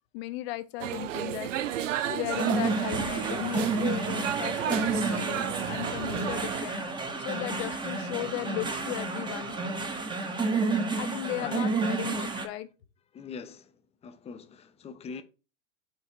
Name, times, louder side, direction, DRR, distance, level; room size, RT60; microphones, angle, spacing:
voice 1, 0.1-6.8 7.2-9.5 11.0-12.7, left 16 dB, 55° left, 0.8 m, -36 dB
sound 1, 0.8-6.6, right 11 dB, 75° right, 0.6 m, -33 dB
sound 2, 2.3-12.5, right 3 dB, 10° right, 0.9 m, -30 dB
voice 2, 11.4-11.7 13.1-15.2, left 5 dB, 15° left, 0.6 m, -43 dB
4.7 x 4.6 x 4.4 m
hypercardioid pair, 100°, 38 cm